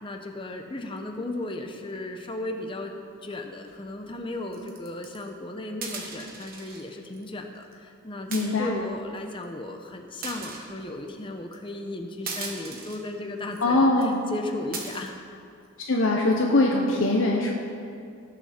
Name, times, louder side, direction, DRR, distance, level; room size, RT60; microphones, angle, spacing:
voice 1, 0.0-15.2, left 2 dB, 25° left, 3 dB, 0.8 m, -35 dB
sound 1, 3.7-3.9 4.5-5.3 5.8-6.8 7.1-7.3 7.6-7.7 8.3-8.8 9.4-9.5 10.2-10.7 11.5-11.7 12.3-13.0 13.5-13.6 14.0-14.2 14.7-15.1 15.7-16.1, right 4 dB, 45° right, 1.5 m, -38 dB
voice 2, 8.3-8.8 13.6-14.2 15.9-17.5, left 2 dB, 65° left, 0 dB, 1.0 m, -22 dB
18.0 x 7.4 x 4.4 m, 2.4 s
head